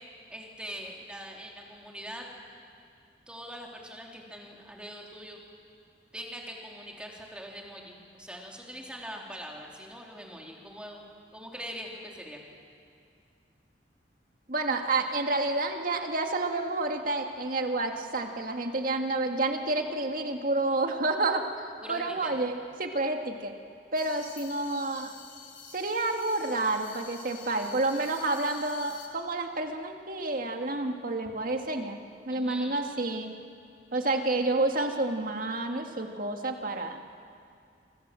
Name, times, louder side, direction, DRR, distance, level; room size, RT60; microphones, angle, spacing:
voice 1, 0.3-2.3 3.3-5.4 6.1-11.0 11.3-12.4 21.8-22.3 32.3-32.9, equal, 5° right, -1 dB, 3.5 m, -42 dB
voice 2, 14.5-23.5 23.9-25.1 25.7-33.3 33.9-37.0, right 2 dB, 50° right, 4 dB, 2.0 m, -29 dB
sound 1, 23.9-29.1, left 6 dB, 45° left, 3.2 m, -48 dB
26.0 x 24.5 x 7.7 m, 2.3 s
head